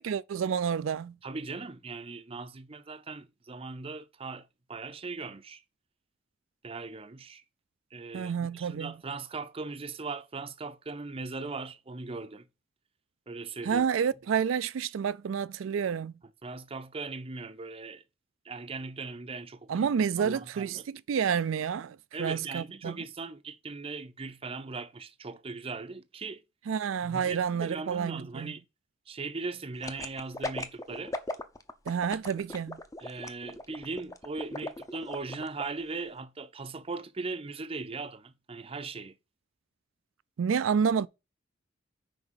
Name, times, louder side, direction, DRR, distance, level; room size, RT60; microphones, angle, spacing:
voice 1, 0.0-1.2 8.1-8.9 13.6-16.1 19.7-23.0 26.7-28.5 31.9-32.8 40.4-41.1, right 7 dB, 90° right, 0.4 m, -29 dB
voice 2, 1.2-5.6 6.6-7.4 7.9-12.5 13.3-13.8 16.4-18.0 18.4-19.9 20.2-20.8 22.1-26.4 27.0-28.6 29.1-31.1 33.0-39.2, right 3 dB, 30° right, 0.6 m, -39 dB
sound 1, 29.8-35.6 36.0-36.1, left 2 dB, 15° left, 0.7 m, -37 dB
6.2 x 5.0 x 5.7 m
head